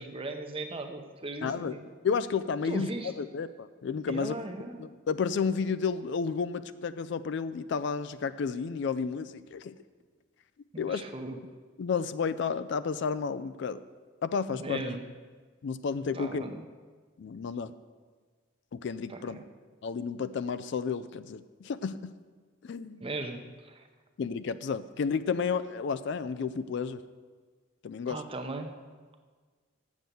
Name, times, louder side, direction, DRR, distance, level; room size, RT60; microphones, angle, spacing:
voice 1, 0.0-1.8 2.6-3.1 4.1-4.8 10.7-11.4 14.5-15.0 16.1-16.6 19.1-19.4 23.0-23.8 28.1-28.7, right 2 dB, 30° right, 6 dB, 0.7 m, -38 dB
voice 2, 1.4-4.3 4.8-9.8 10.8-11.0 11.8-13.8 14.2-14.8 15.6-16.6 17.2-17.7 18.7-19.4 19.8-22.1 22.6-23.0 24.2-27.0 27.8-28.2, left 5 dB, 65° left, 13 dB, 0.4 m, -32 dB
7.7 x 7.3 x 6.8 m, 1.5 s
head